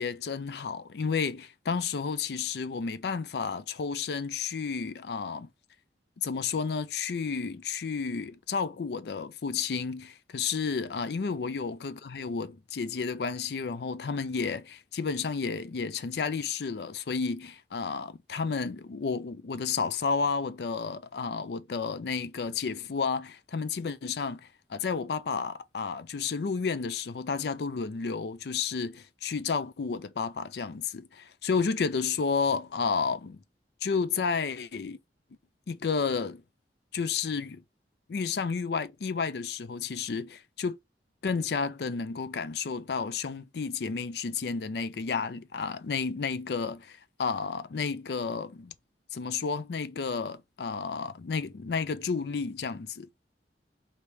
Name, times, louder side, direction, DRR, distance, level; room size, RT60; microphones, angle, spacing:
voice 1, 0.0-5.5 6.2-33.4 33.8-35.0 35.7-36.4 36.9-37.6 38.1-40.8 41.2-48.7 49.1-53.1, left 5 dB, 65° left, 0.4 m, -31 dB
3.2 x 2.9 x 4.5 m
head